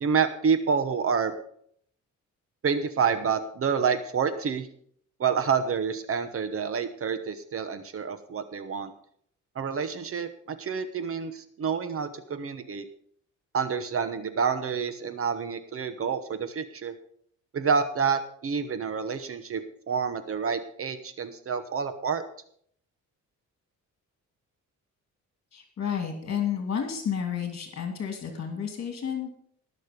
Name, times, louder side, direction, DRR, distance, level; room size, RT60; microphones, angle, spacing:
voice 1, 0.0-1.3 2.6-4.7 5.2-8.9 9.5-12.9 13.5-17.0 17.5-22.2, right 6 dB, 45° right, 10 dB, 1.1 m, -28 dB
voice 2, 25.5-29.4, left 8 dB, 45° left, 4 dB, 2.5 m, -31 dB
18.5 x 6.5 x 5.2 m, 0.63 s
cardioid pair, 120°, 31 cm